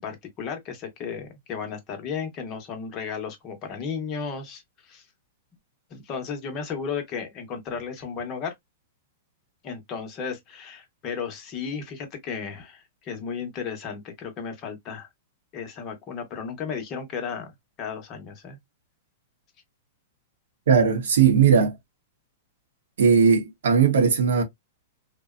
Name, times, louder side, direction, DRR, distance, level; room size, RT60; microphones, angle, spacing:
voice 1, 0.0-5.0 5.9-8.5 9.6-15.1 15.5-18.6, left 6 dB, 30° left, 0.9 m, -34 dB
voice 2, 20.7-21.7 23.0-24.4, right 6 dB, 80° right, 0.9 m, -18 dB
2.6 x 2.2 x 2.3 m
hypercardioid pair, 145°, 0 cm